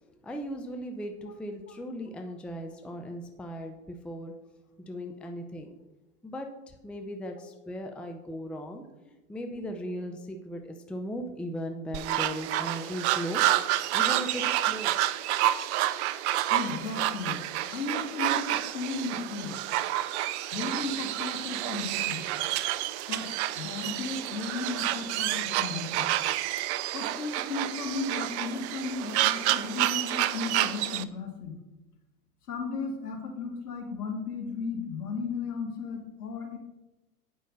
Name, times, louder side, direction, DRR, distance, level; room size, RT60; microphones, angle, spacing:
voice 1, 0.1-4.3 4.8-5.7 6.2-8.8 9.3-13.4 13.9-15.0, equal, ahead, 4 dB, 0.6 m, -37 dB
sound 1, 11.9-31.0, right 14 dB, 45° right, 0.6 m, -29 dB
voice 2, 16.5-19.5 20.5-22.2 23.1-23.3 23.5-26.1 26.9-31.6 32.5-36.6, left 4 dB, 75° left, 1 dB, 2.5 m, -35 dB
9.1 x 5.5 x 6.6 m, 1.1 s
hypercardioid pair, 95°, 46 cm